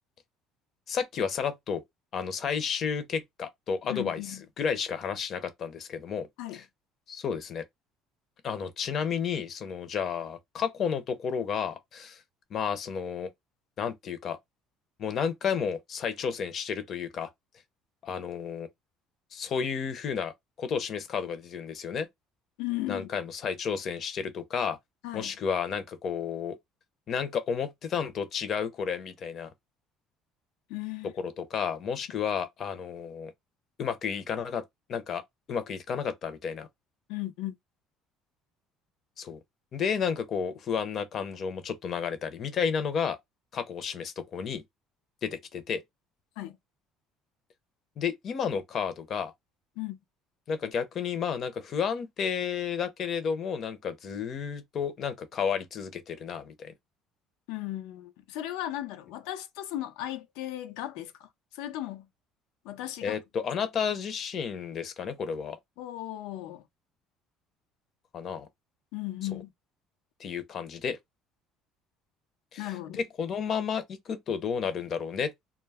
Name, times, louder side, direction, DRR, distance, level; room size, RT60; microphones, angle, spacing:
voice 1, 0.9-1.8 2.1-6.3 6.5-6.7 7.1-7.6 8.4-12.2 12.5-13.3 13.8-14.4 15.0-17.3 18.0-18.7 19.3-20.3 20.6-22.1 22.9-24.8 25.1-26.6 27.1-29.5 31.1-33.3 33.8-34.6 34.9-35.2 35.5-36.7 39.2-39.4 39.7-43.2 43.5-44.6 45.2-45.8 48.0-49.3 50.5-56.7 63.0-65.6 68.1-68.5 69.3-69.4 70.2-71.0 72.5-75.3, left 6 dB, 45° left, 0.6 m, -32 dB
voice 2, 3.9-4.4 6.4-6.6 22.6-23.1 25.0-25.3 30.7-31.1 37.1-37.5 46.4-46.6 49.8-50.0 57.5-61.3 61.5-62.1 62.6-63.2 65.8-66.6 68.9-69.5 72.6-73.0, left 15 dB, 90° left, 0.5 m, -36 dB
2.2 x 2.0 x 3.3 m
cardioid pair, 125°, 0 cm